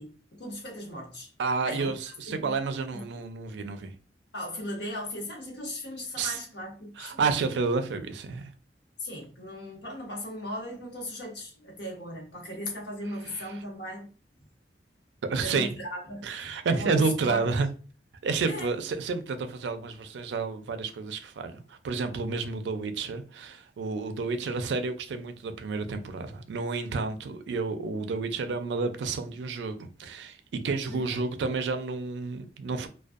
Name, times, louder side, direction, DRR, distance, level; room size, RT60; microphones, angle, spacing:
voice 1, 0.0-1.3 1.6-2.0 2.3-2.5 2.9-3.0 4.3-7.2 9.0-14.1 15.4-17.5 18.5-18.7 30.9-31.2, left 1 dB, 75° left, 0.9 m, -38 dB
voice 2, 1.4-3.9 6.2-6.4 7.0-8.5 13.3-13.5 15.3-15.8 16.2-17.7 18.2-32.9, right 4 dB, 80° right, 0.4 m, -30 dB
2.4 x 2.2 x 2.5 m
head